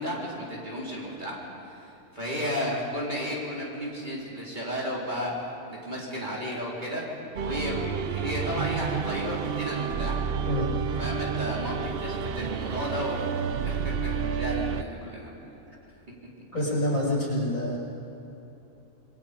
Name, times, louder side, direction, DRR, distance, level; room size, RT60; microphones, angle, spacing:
voice 1, 0.0-1.4 1.6-10.2 11.0-13.2 13.6-15.3, equal, 35° right, -5 dB, 4.3 m, -33 dB
sound 1, 7.4-14.8, right 7 dB, 55° right, 0.7 m, -30 dB
voice 2, 16.5-17.8, left 1 dB, 70° left, -5 dB, 7.0 m, -27 dB
28.0 x 21.5 x 5.2 m, 3.0 s
omnidirectional pair, 1.4 m